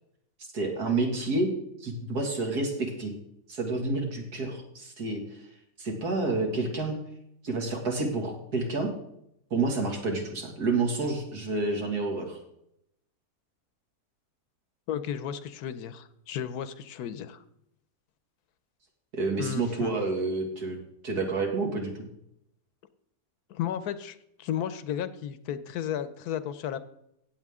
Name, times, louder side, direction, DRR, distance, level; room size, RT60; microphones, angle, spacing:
voice 1, 0.5-1.5 1.8-3.1 3.5-5.4 5.8-7.0 7.4-8.9 9.5-12.4 19.1-20.8 21.0-22.1, right 3 dB, 80° right, 2 dB, 2.6 m, -29 dB
voice 2, 14.9-17.4 19.4-20.0 23.5-26.8, left 9 dB, 75° left, 13 dB, 1.2 m, -34 dB
15.5 x 8.5 x 3.6 m, 0.78 s
omnidirectional pair, 1.7 m